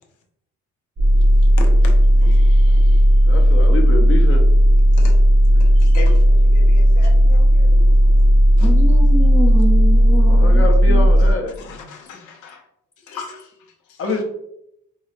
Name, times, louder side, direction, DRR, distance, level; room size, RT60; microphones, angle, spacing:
sound 1, 1.0-11.3, equal, 35° right, 0.6 m, -13 dB
voice 1, 1.2-3.1 3.6-3.7 4.9-5.2 5.6-8.2 8.6-8.7 11.2-12.7 13.0-14.2, left 4 dB, 80° left, 2 dB, 0.7 m, -38 dB
voice 2, 3.3-4.4 10.3-11.5 14.0-14.2, left 2 dB, 45° left, 3 dB, 0.7 m, -25 dB
voice 3, 8.6-11.1, equal, 10° left, 1 dB, 0.5 m, -26 dB
3.8 x 2.1 x 2.5 m, 0.76 s
cardioid pair, 90°, 30 cm